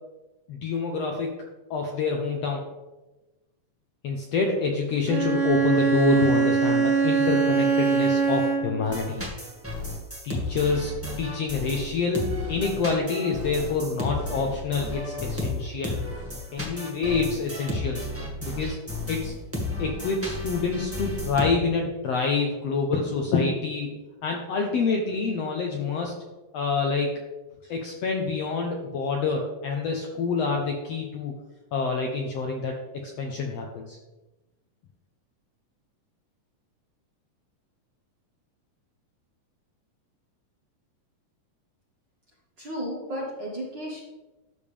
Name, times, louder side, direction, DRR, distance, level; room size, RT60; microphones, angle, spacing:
voice 1, 0.5-1.3 1.7-2.6 4.0-9.2 10.2-12.2 12.5-16.0 16.5-18.1 18.4-18.8 19.1-19.3 19.8-23.9 24.2-26.1 26.5-27.2 27.7-31.3 31.7-32.7 33.2-34.0, left 4 dB, 70° left, 1 dB, 1.6 m, -27 dB
Bowed string instrument, 5.1-8.9, right 5 dB, 80° right, 3.0 m, -22 dB
sound 1, 8.8-21.5, left 1 dB, 10° right, 0.7 m, -33 dB
voice 2, 42.6-44.0, equal, 45° right, -4 dB, 1.5 m, -33 dB
12.0 x 7.0 x 3.4 m, 1.1 s
omnidirectional pair, 3.9 m